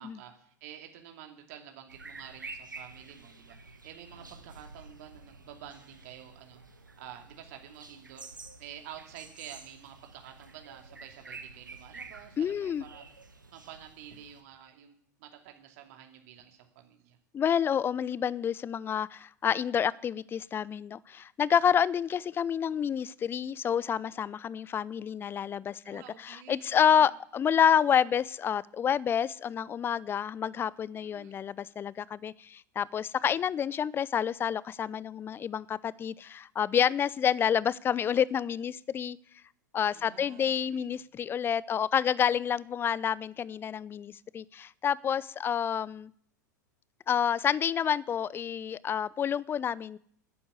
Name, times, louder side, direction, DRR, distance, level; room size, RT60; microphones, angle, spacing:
voice 1, 0.0-6.6 7.0-13.0 13.5-17.2 25.8-27.1 31.0-31.4 33.1-33.4 39.9-40.9, right 10 dB, 55° right, 4 dB, 2.7 m, -49 dB
sound 1, 1.9-14.4, right 3 dB, 85° right, 1.6 m, -49 dB
voice 2, 12.4-12.8 17.3-39.2 39.7-46.1 47.1-50.0, left 8 dB, 20° left, 22 dB, 0.6 m, -28 dB
14.0 x 10.0 x 9.6 m, 0.63 s
figure-of-eight pair, 90°, 10 cm